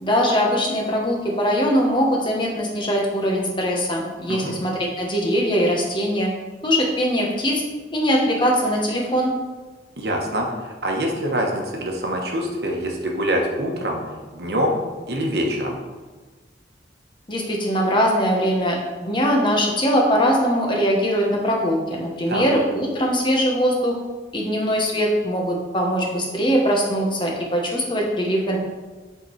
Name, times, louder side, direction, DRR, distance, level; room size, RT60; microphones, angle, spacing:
voice 1, 0.0-6.3 6.6-7.6 7.9-9.3 17.3-24.0 24.3-28.6, equal, 25° left, -1 dB, 1.0 m, -21 dB
voice 2, 10.0-14.0 14.3-14.8 15.1-15.8 22.3-22.4, equal, 65° right, 1 dB, 1.1 m, -25 dB
7.9 x 3.8 x 4.6 m, 1.3 s
head